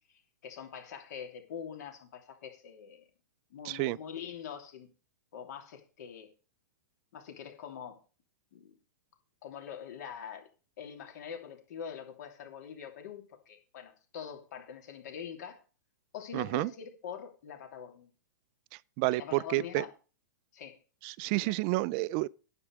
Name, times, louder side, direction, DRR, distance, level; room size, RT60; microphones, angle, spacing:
voice 1, 0.1-3.0 3.5-4.9 5.3-6.3 7.1-8.0 8.5-8.7 9.4-10.5 10.8-15.6 16.1-18.1 19.1-19.9 20.5-20.8 21.3-21.6, left 8 dB, 60° left, 3.0 m, -44 dB
voice 2, 3.6-4.0 16.3-16.7 19.0-19.8 21.0-22.3, right 21 dB, 35° right, 0.4 m, -30 dB
9.8 x 8.3 x 4.7 m
hypercardioid pair, 140°, 10 cm